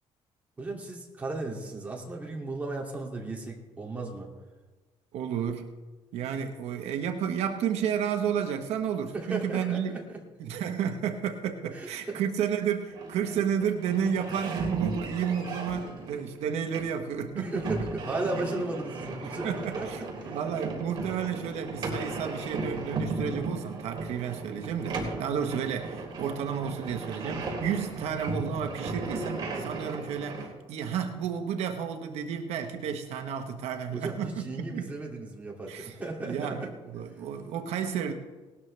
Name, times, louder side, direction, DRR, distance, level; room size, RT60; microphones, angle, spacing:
voice 1, 0.6-4.3 9.1-10.2 11.7-12.2 17.4-20.4 34.0-36.7, right 2 dB, 15° right, -2 dB, 2.3 m, -35 dB
voice 2, 5.1-5.7 6.1-10.0 10.4-17.5 18.4-18.5 19.2-34.4 34.7-34.9 35.7-36.0 36.2-38.1, right 8 dB, 80° right, 5 dB, 1.1 m, -31 dB
sound 1, 12.9-30.5, right 3 dB, 45° right, 3.3 m, -36 dB
18.5 x 12.5 x 3.3 m, 1.3 s
cardioid pair, 170°, 11 cm